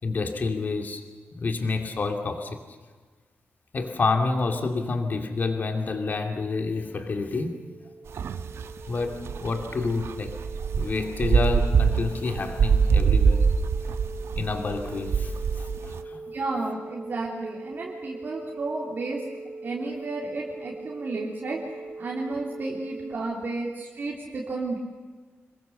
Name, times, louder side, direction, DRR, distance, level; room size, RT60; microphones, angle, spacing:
voice 1, 0.0-1.0 1.4-2.6 3.7-7.5 8.9-10.3 10.7-13.5 14.4-16.2, left 3 dB, 40° left, 5 dB, 2.5 m, -28 dB
sound 1, 6.2-23.1, right 3 dB, 60° right, 3.2 m, -41 dB
sound 2, 8.1-16.0, right 6 dB, 80° right, 1.1 m, -24 dB
voice 2, 16.3-19.2 19.6-24.8, right 3 dB, 45° right, -2 dB, 3.2 m, -32 dB
27.0 x 22.0 x 6.9 m, 1.4 s
wide cardioid pair, 170°, 4 cm